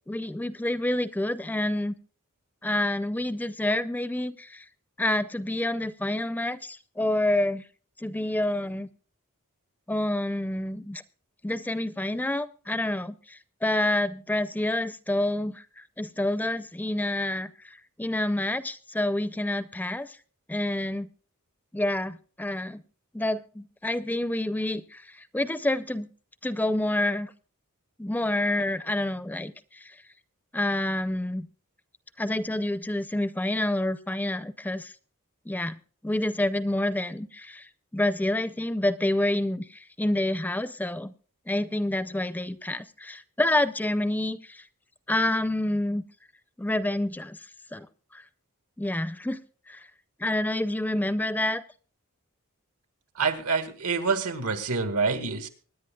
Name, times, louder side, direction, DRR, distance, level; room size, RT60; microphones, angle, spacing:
voice 1, 0.1-2.0 2.6-4.6 5.0-7.6 8.0-8.9 9.9-11.0 11.4-20.2 20.5-21.1 21.7-22.8 23.1-26.1 26.4-27.3 28.0-30.0 30.5-31.5 32.2-34.9 35.5-35.8 36.0-41.1 41.5-44.7 45.1-46.0 46.6-47.4 47.7-47.9 48.1-48.2 48.8-49.4 49.7-49.9 50.2-51.6, left 1 dB, 10° left, 14 dB, 0.4 m, -28 dB
voice 2, 53.2-55.5, right 4 dB, 90° right, 7 dB, 2.0 m, -27 dB
24.5 x 10.5 x 2.3 m, 0.40 s
head